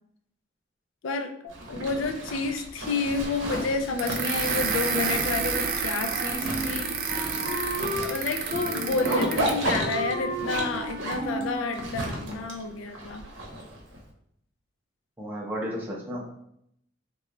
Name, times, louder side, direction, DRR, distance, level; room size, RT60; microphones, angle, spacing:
voice 1, 1.0-6.9 8.0-13.3, left 4 dB, 80° left, 6 dB, 0.4 m, -30 dB
Zipper (clothing), 1.5-14.0, right 1 dB, 75° right, 0.7 m, -34 dB
sound 1, 4.0-9.6, right 5 dB, 45° right, 0.4 m, -30 dB
Wind instrument woodwind instrument, 6.0-8.1 8.5-9.5 9.8-12.0, right 1 dB, 40° left, 1.3 m, -34 dB
voice 2, 15.2-16.3, equal, 10° right, -4 dB, 0.7 m, -33 dB
3.0 x 2.3 x 3.7 m, 0.74 s
head